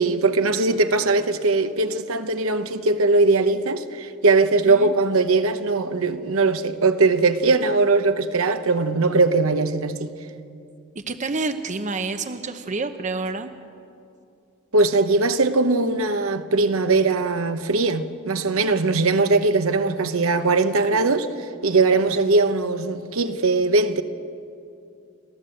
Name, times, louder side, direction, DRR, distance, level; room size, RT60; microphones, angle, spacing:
voice 1, 0.0-10.1 14.7-21.3 21.6-24.0, right 3 dB, 65° right, 1.0 m, -20 dB
voice 2, 10.9-13.5, right 3 dB, 35° right, 0.8 m, -28 dB
30.0 x 13.5 x 7.8 m
head